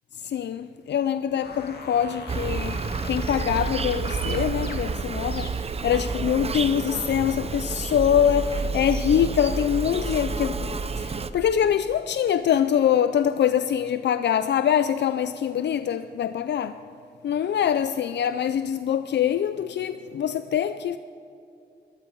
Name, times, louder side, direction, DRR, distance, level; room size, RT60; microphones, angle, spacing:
voice 1, 0.2-2.8 3.0-5.5 5.8-16.7 17.2-21.0, left 9 dB, 80° left, 0.4 m, -24 dB
sound 1, 1.4-5.9, left 3 dB, 65° left, 2.1 m, -42 dB
Insect, 2.3-11.3, right 4 dB, 35° right, 0.7 m, -29 dB
22.0 x 13.0 x 4.6 m
wide cardioid pair, 130°, 18 cm